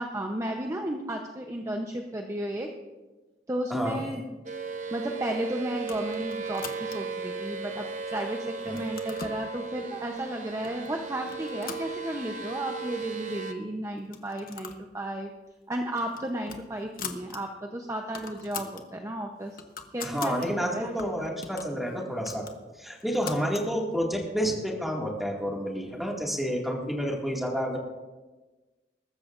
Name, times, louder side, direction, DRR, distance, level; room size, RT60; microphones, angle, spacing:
voice 1, 0.0-2.7 3.5-4.2 4.9-15.3 15.7-19.6 19.9-20.4 20.7-20.9 21.2-21.3, right 1 dB, 20° right, 3 dB, 0.8 m, -33 dB
voice 2, 3.7-4.0 8.6-8.8 20.0-22.5 22.8-27.8, equal, ahead, -1 dB, 2.1 m, -29 dB
sound 1, 4.5-13.5, right 5 dB, 45° right, 0.9 m, -36 dB
sound 2, 5.8-7.2 7.8-8.3 8.6-9.4 10.2-10.3 10.6-10.9 11.2-12.5 12.8-12.9 13.1-13.2 14.0-14.9 15.2-15.4 15.8-17.4 17.7-17.8 18.0-18.9 19.3-20.5 21.0-23.7, left 6 dB, 55° left, 1.1 m, -42 dB
21.5 x 13.0 x 2.5 m, 1.2 s
head